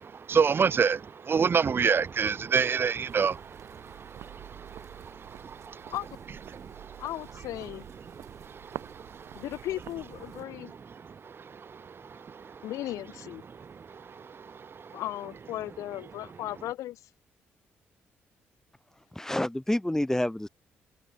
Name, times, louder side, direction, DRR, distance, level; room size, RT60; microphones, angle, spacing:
voice 1, 0.0-5.9 6.5-7.0 8.1-9.4 10.6-12.7 13.5-15.0, right 6 dB, 40° right, 0.7 m, -30 dB
sound 1, 3.1-10.4, right 13 dB, 70° right, 7.3 m, -48 dB
voice 2, 7.0-7.8 9.3-10.7 12.6-13.4 14.9-17.0, left 14 dB, 75° left, 2.5 m, -36 dB
voice 3, 19.2-20.5, left 1 dB, 10° left, 2.0 m, -28 dB
hypercardioid pair, 45°, 6 cm